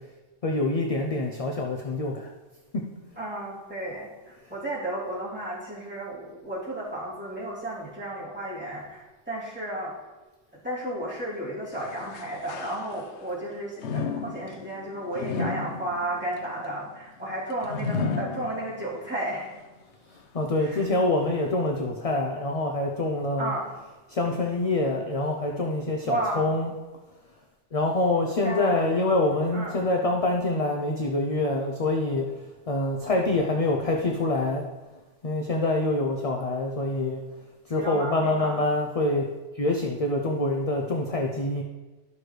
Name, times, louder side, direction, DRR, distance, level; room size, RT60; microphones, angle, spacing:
voice 1, 0.4-2.3 2.7-2.9 20.3-23.5 24.1-26.7 27.7-32.3 32.7-34.6 35.2-37.2 37.7-39.3 39.5-41.6, left 2 dB, 40° left, 1 dB, 0.6 m, -25 dB
voice 2, 3.2-9.9 10.6-19.5 20.6-20.8 23.4-23.7 26.0-26.5 28.4-28.8 29.5-29.8 37.8-38.7, right 1 dB, 10° right, -10 dB, 3.0 m, -33 dB
sound 1, 11.7-13.3 13.8-19.1 19.5-19.6 20.5-20.6, left 4 dB, 75° left, 1.0 m, -34 dB
12.0 x 6.2 x 3.3 m, 1.2 s
omnidirectional pair, 1.2 m